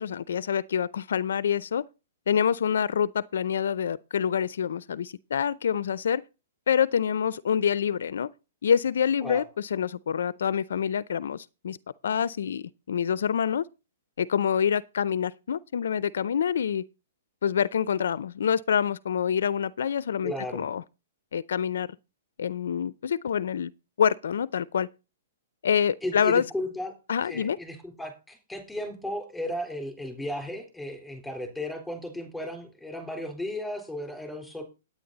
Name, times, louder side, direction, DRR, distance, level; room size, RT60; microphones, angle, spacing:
voice 1, 0.0-1.8 2.3-6.2 6.7-8.3 8.6-11.8 12.0-13.7 14.2-16.8 17.4-20.8 21.3-21.9 22.4-23.7 24.0-24.9 25.6-26.5 27.1-27.6, left 8 dB, 75° left, 0.5 m, -26 dB
voice 2, 20.2-20.6 26.0-26.9 27.2-34.6, left 1 dB, 5° left, 3.8 m, -35 dB
10.5 x 9.4 x 4.0 m
hypercardioid pair, 125°, 0 cm